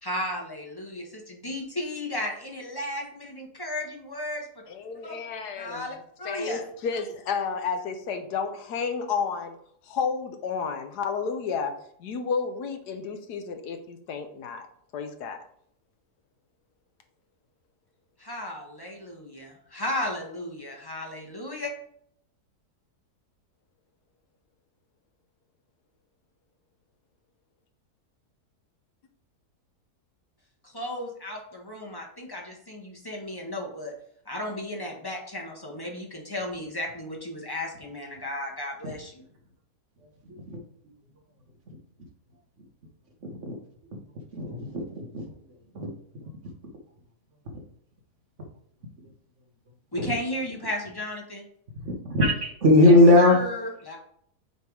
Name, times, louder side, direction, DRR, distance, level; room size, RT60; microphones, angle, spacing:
voice 1, 0.0-4.5 5.0-5.1 5.6-6.6 18.2-21.7 30.6-33.9 34.2-39.2 49.9-51.4 52.8-54.0, left 1 dB, 15° left, 0 dB, 1.1 m, -34 dB
voice 2, 4.7-5.9 6.2-9.6 9.9-11.7 12.0-14.7 14.9-15.4, left 5 dB, 80° left, 6 dB, 1.4 m, -31 dB
voice 3, 44.3-45.2 45.7-45.9 50.0-50.1 51.8-53.4, left 2 dB, 50° right, 2 dB, 1.4 m, -19 dB
6.7 x 3.5 x 4.7 m, 0.67 s
omnidirectional pair, 1.7 m